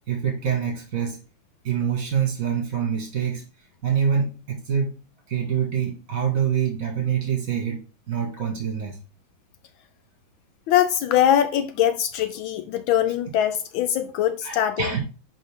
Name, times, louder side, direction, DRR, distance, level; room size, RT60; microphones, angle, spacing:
voice 1, 0.1-1.2 1.6-3.4 3.8-5.0 5.3-7.8 8.1-9.0 14.4-15.0, right 7 dB, 40° right, 2.2 m, -25 dB
voice 2, 10.7-15.0, left 10 dB, 75° left, 1.4 m, -22 dB
11.0 x 4.2 x 3.6 m
omnidirectional pair, 2.2 m